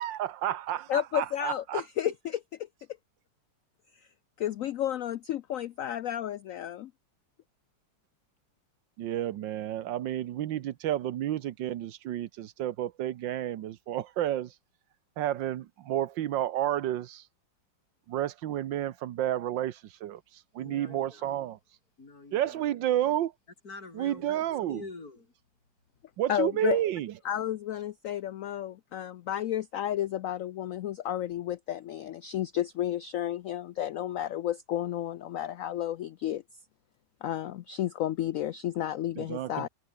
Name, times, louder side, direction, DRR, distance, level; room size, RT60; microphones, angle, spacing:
voice 1, 0.0-1.8 9.0-14.5 15.2-17.2 18.1-20.2 20.5-21.6 22.3-23.3 23.9-24.8 26.2-27.1 39.2-39.7, right 12 dB, 80° right, 1.6 m, -31 dB
voice 2, 0.9-2.4 4.4-6.9 26.3-26.8 27.2-36.4 37.2-39.7, left 11 dB, 75° left, 0.7 m, -32 dB
voice 3, 20.6-21.4 22.0-22.7 23.6-24.4 24.7-25.3, left 3 dB, 55° left, 4.0 m, -46 dB
omnidirectional pair, 2.0 m